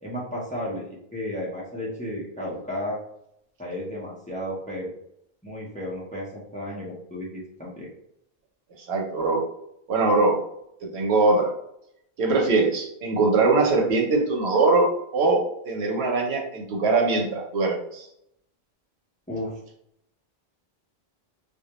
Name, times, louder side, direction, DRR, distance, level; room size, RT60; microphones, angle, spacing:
voice 1, 0.0-3.0 3.6-4.9 5.4-7.9 19.3-19.5, left 1 dB, 10° left, -5 dB, 0.5 m, -33 dB
voice 2, 8.8-9.4 9.9-10.3 10.8-11.5 12.2-14.9 15.1-15.4 15.7-18.1, right 3 dB, 85° right, 1 dB, 0.9 m, -22 dB
2.3 x 2.1 x 2.8 m, 0.75 s
omnidirectional pair, 1.0 m